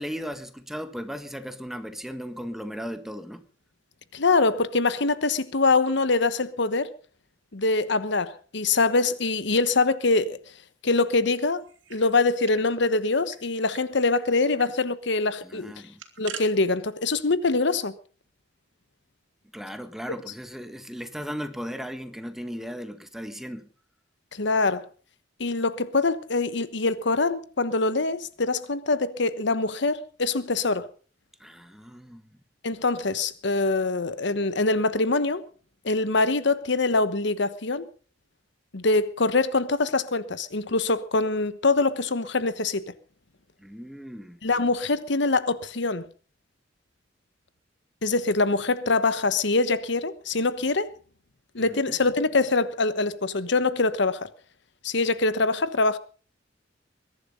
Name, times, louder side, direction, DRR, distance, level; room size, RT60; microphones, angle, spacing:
voice 1, 0.0-3.4 15.4-16.0 19.5-23.7 31.4-32.2 43.6-44.4 51.6-52.0, equal, ahead, 1.5 m, -36 dB
voice 2, 4.1-6.9 7.5-10.4 10.8-11.6 11.9-15.7 16.2-17.9 24.3-24.8 25.4-30.9 32.6-35.4 35.8-37.9 38.7-42.8 44.4-46.0 48.0-50.9 51.5-54.3 54.8-56.0, left 3 dB, 70° left, 1.1 m, -24 dB
sound 1, 11.6-12.7 12.9-13.0 13.3-13.8 14.1-14.3 14.6-14.8 15.7-16.4, right 7 dB, 85° right, 2.9 m, -42 dB
22.0 x 11.0 x 5.4 m
head